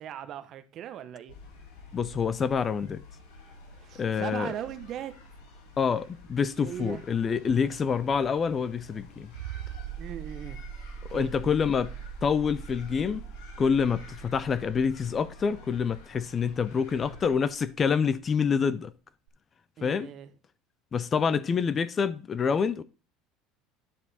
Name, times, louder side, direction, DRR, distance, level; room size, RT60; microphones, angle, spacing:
voice 1, 0.0-1.3 3.8-5.1 6.5-7.0 10.0-10.6 11.1-11.3 19.8-20.3, right 10 dB, 45° right, 0.8 m, -38 dB
sound 1, 1.3-17.3, left 2 dB, 85° left, 2.8 m, -50 dB
voice 2, 1.9-3.0 4.0-4.5 5.8-9.3 11.1-11.9 12.2-13.2 13.6-18.9 19.8-20.1 20.9-22.8, left 6 dB, 25° left, 0.4 m, -27 dB
sound 2, 9.3-17.8 19.3-19.4, right 8 dB, 80° right, 0.6 m, -42 dB
10.0 x 4.8 x 4.1 m
cardioid pair, 135°, 0 cm